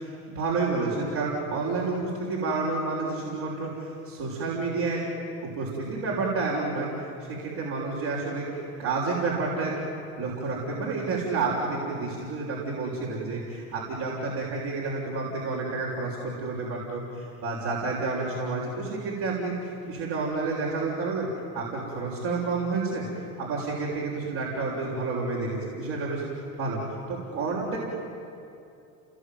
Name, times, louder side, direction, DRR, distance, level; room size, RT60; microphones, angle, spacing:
voice 1, 0.3-5.0 5.4-6.9 7.2-9.8 10.2-21.3 21.5-23.0 23.4-26.2 26.6-26.8 27.1-27.8, right 3 dB, 65° right, -5 dB, 6.4 m, -30 dB
29.0 x 21.5 x 9.5 m, 2.6 s
hypercardioid pair, 80°, 40 cm